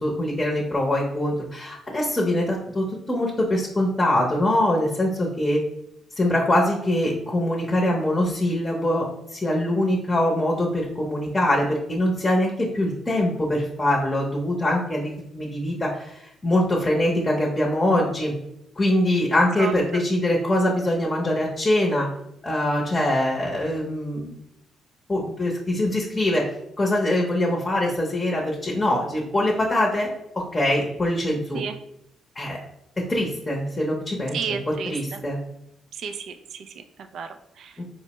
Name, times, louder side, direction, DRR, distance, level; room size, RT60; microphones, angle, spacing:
voice 1, 0.0-5.6 6.2-18.3 18.8-22.1 22.4-24.3 25.1-26.5 26.8-30.1 30.4-31.6 32.3-32.6 33.1-35.4 37.8-37.9, left 1 dB, 20° left, -2 dB, 0.7 m, -23 dB
voice 2, 34.3-34.9 35.9-37.7, right 6 dB, 65° right, 7 dB, 0.3 m, -32 dB
4.4 x 2.1 x 2.9 m, 0.79 s
cardioid pair, 90°, 0 cm